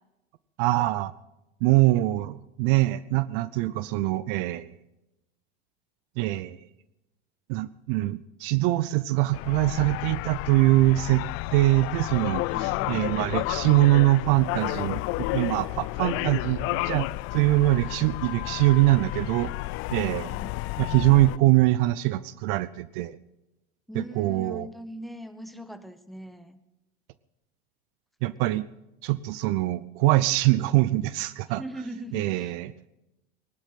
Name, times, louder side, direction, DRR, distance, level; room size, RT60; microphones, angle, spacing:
voice 1, 0.6-1.1 1.6-4.7 6.2-6.6 7.5-19.5 19.9-20.3 20.8-23.2 23.9-24.7 28.2-28.7 29.0-31.6 32.1-32.7, right 18 dB, 60° right, 18 dB, 0.7 m, -23 dB
sound 1, 9.3-21.4, left 21 dB, 45° left, 0.5 m, -31 dB
voice 2, 12.5-13.3 20.0-20.5 23.9-26.6 31.5-32.5, right 1 dB, ahead, 11 dB, 1.5 m, -40 dB
19.5 x 11.5 x 5.9 m, 0.94 s
hypercardioid pair, 90°, 31 cm